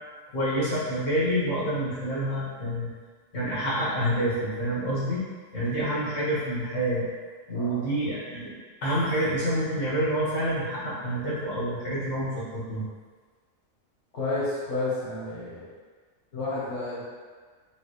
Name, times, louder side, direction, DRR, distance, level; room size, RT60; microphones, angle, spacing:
voice 1, 0.3-2.9 3.3-5.2 5.5-7.1 7.5-8.5 8.8-12.8, right 1 dB, 85° left, -8 dB, 1.9 m, -27 dB
voice 2, 7.5-7.9 14.1-15.7 16.3-17.1, left 2 dB, 65° left, -8 dB, 1.3 m, -31 dB
5.5 x 2.6 x 3.1 m, 1.5 s
omnidirectional pair, 1.3 m